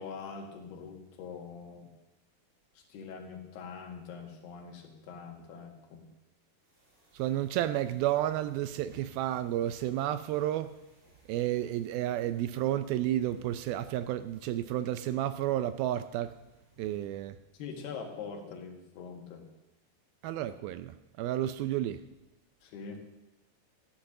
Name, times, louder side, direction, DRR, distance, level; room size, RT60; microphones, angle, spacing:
voice 1, 0.0-1.9 2.8-6.1 17.5-19.5 22.6-23.0, left 5 dB, 80° left, 3 dB, 3.8 m, -43 dB
sound 1, 6.6-17.3, right 2 dB, 45° right, 6.1 m, -62 dB
voice 2, 7.1-10.7 11.3-16.3 16.8-17.4 20.2-22.0, right 12 dB, 80° right, 12 dB, 2.3 m, -31 dB
14.0 x 10.0 x 6.6 m, 0.98 s
omnidirectional pair, 4.6 m